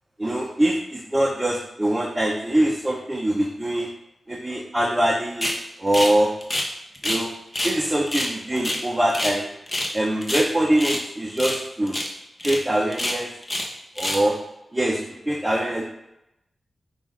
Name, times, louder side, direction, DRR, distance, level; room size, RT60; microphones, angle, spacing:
voice 1, 0.2-3.9 4.3-6.3 7.0-7.3 7.6-9.5 9.9-12.0 12.4-13.3 14.0-14.4 14.7-15.0 15.3-15.8, right 1 dB, 20° right, -1 dB, 0.7 m, -23 dB
sound 1, 5.4-5.6 5.9-7.2 7.5-7.8 8.1-9.4 9.7-9.9 10.2-11.0 11.4-11.6 11.9-12.1 12.4-12.6 12.9-13.7 14.0-14.3, left 1 dB, 30° left, 1.0 m, -27 dB
5.8 x 2.4 x 3.7 m, 0.87 s
cardioid pair, 45°, 0 cm